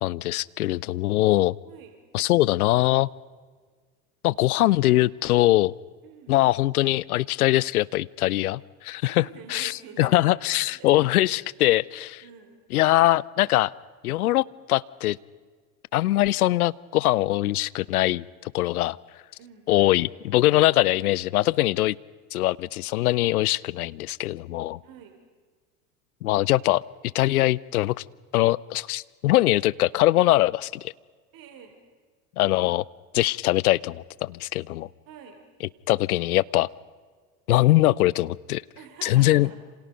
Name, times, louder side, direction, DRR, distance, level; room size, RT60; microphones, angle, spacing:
voice 1, 0.0-1.5 2.1-3.1 4.2-5.7 6.3-12.2 12.7-13.7 14.0-15.2 15.9-19.0 19.7-22.0 22.3-24.8 26.2-26.8 27.1-28.0 28.3-30.9 32.4-32.8 33.1-34.9 35.9-36.7 37.5-38.6 39.0-39.5, left 16 dB, 70° left, 23 dB, 0.7 m, -22 dB
voice 2, 6.0-6.4 9.0-11.5 12.2-12.6 19.4-19.7 20.7-20.9 24.8-25.2 31.3-31.8 35.1-35.4 38.8-39.6, right 7 dB, 50° right, 5 dB, 3.7 m, -47 dB
28.5 x 27.0 x 5.2 m, 1.5 s
figure-of-eight pair, 75°, 46 cm